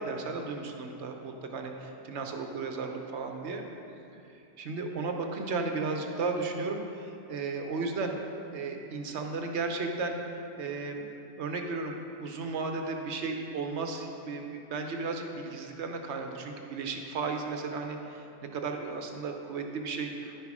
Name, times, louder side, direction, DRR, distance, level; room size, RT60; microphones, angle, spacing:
voice 1, 0.0-3.7 4.6-8.2 8.5-10.2 10.6-11.1 11.4-18.2 18.5-20.4, right 4 dB, 70° right, 3 dB, 1.1 m, -34 dB
10.5 x 5.6 x 4.7 m, 2.7 s
omnidirectional pair, 1.2 m